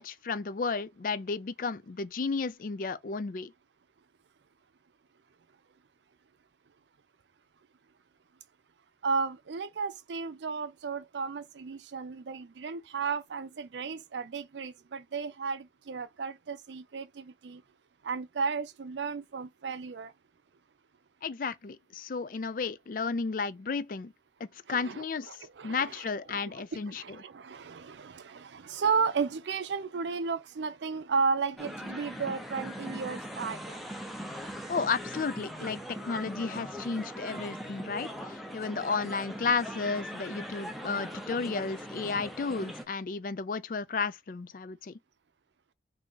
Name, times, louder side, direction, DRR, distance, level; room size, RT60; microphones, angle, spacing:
voice 1, 0.0-3.5 21.2-24.1 24.7-25.3 25.6-27.2 34.7-35.8 36.1-44.9, left 4 dB, 50° left, 0.4 m, -33 dB
voice 2, 9.0-17.6 18.0-20.1 24.7-26.0 26.3-33.8, right 5 dB, 85° right, 0.5 m, -34 dB
sound 1, 31.6-42.8, equal, ahead, 0.7 m, -40 dB
3.6 x 2.8 x 3.8 m
head